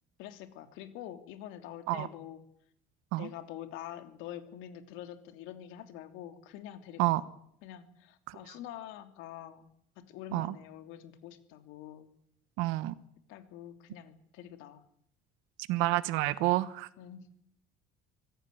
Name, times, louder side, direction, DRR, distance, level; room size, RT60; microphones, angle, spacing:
voice 1, 0.2-2.4 3.2-7.3 7.6-9.7 10.0-12.1 13.3-14.8 17.0-17.3, left 11 dB, 75° left, 8 dB, 3.1 m, -46 dB
voice 2, 12.6-12.9 15.7-16.9, right 18 dB, 85° right, 14 dB, 1.2 m, -29 dB
26.0 x 17.0 x 9.3 m, 0.70 s
cardioid pair, 165°, 21 cm